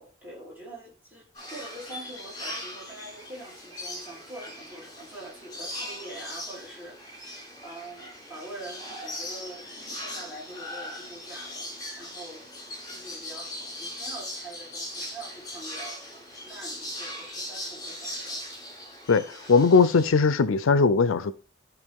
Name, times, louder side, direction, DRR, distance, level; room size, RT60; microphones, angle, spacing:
voice 1, 0.0-18.6, right 1 dB, 10° right, 4.7 m, -44 dB
sound 1, 1.3-20.1, left 1 dB, 20° left, 4.9 m, -39 dB
voice 2, 19.1-21.3, left 4 dB, 70° left, 0.5 m, -20 dB
13.0 x 4.6 x 3.6 m
head